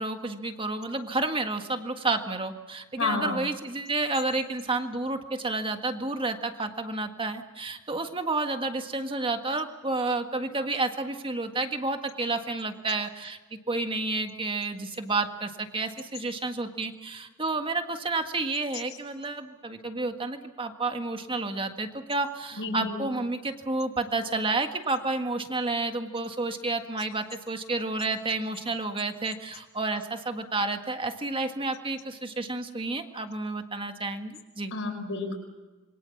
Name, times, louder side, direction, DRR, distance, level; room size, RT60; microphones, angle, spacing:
voice 1, 0.0-13.4 13.7-34.7, right 3 dB, 25° right, 6 dB, 1.7 m, -30 dB
voice 2, 3.0-3.4 22.6-23.1 34.7-35.4, left 3 dB, 60° left, 4 dB, 5.3 m, -30 dB
27.0 x 22.5 x 7.2 m, 1.2 s
head